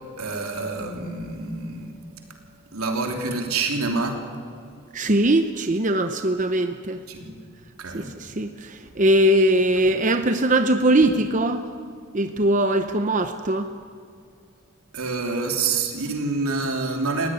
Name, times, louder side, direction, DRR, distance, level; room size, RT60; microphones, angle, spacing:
voice 1, 0.2-1.9 2.7-4.2 7.1-7.3 7.8-8.1 14.9-17.3, right 3 dB, 85° right, 2 dB, 3.0 m, -27 dB
voice 2, 4.9-7.0 7.9-11.7 12.1-13.7, right 1 dB, 35° right, 8 dB, 0.7 m, -21 dB
21.0 x 16.5 x 9.9 m, 2.2 s
head